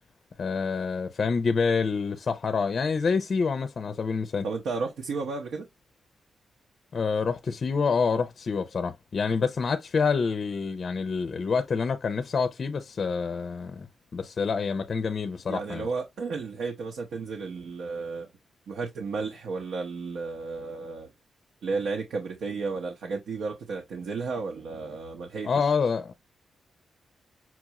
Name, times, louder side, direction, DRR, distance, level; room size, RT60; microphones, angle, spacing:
voice 1, 0.4-4.5 6.9-13.9 14.1-15.9 25.4-26.1, left 5 dB, 40° left, 0.5 m, -27 dB
voice 2, 4.4-5.7 15.5-18.3 18.7-21.1 21.6-25.7, right 4 dB, 80° right, 0.9 m, -33 dB
5.9 x 2.4 x 2.9 m
wide cardioid pair, 155°, 0 cm